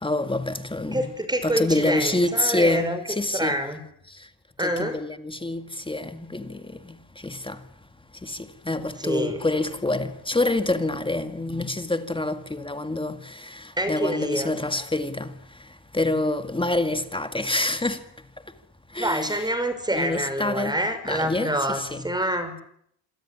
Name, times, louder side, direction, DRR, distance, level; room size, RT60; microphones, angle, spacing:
voice 1, 0.0-1.1 1.4-3.6 4.6-7.6 8.2-15.3 15.9-18.0 18.9-19.4 19.9-20.8 21.1-22.1, left 2 dB, 10° left, 2.0 m, -27 dB
voice 2, 0.9-3.0 3.3-3.8 4.6-5.0 9.0-9.4 13.8-14.6 19.0-22.6, right 1 dB, 10° right, 5.8 m, -27 dB
27.0 x 22.5 x 9.9 m
cardioid pair, 125°, 44 cm